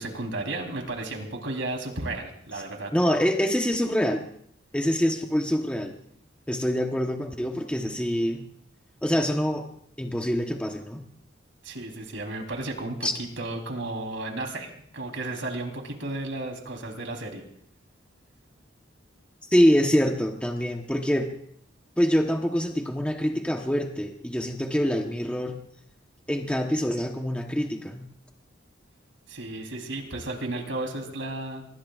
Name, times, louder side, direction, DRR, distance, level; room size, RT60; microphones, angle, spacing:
voice 1, 0.0-2.9 11.6-17.4 29.3-31.6, right 2 dB, 90° right, 2 dB, 3.6 m, -33 dB
voice 2, 2.9-4.2 4.7-5.9 6.5-8.4 9.0-9.6 10.0-11.0 13.0-13.1 19.5-21.3 22.0-25.6 26.3-28.1, equal, 5° left, 2 dB, 1.0 m, -25 dB
24.5 x 23.0 x 2.4 m, 0.66 s
head